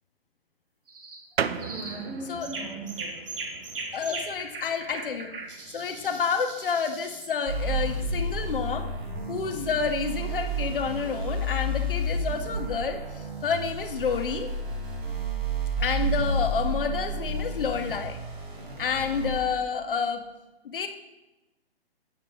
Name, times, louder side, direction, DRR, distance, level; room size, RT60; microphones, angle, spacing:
sound 1, 0.9-1.2 1.6-2.0 2.4-7.3, right 3 dB, 60° right, 1.5 m, -39 dB
sound 2, 1.4-11.5, right 7 dB, 80° right, 0.5 m, -40 dB
voice 1, 1.5-4.0 5.6-6.1, right 3 dB, 10° right, -2 dB, 0.5 m, -40 dB
voice 2, 3.9-5.3 5.7-8.9 9.3-14.5 15.8-18.2 18.8-20.2 20.6-20.9, left 6 dB, 60° left, 6 dB, 0.9 m, -29 dB
sound 3, 7.5-19.4, right 1 dB, 25° right, 1.6 m, -31 dB
7.5 x 5.6 x 3.8 m, 1.0 s
figure-of-eight pair, 130°, 31 cm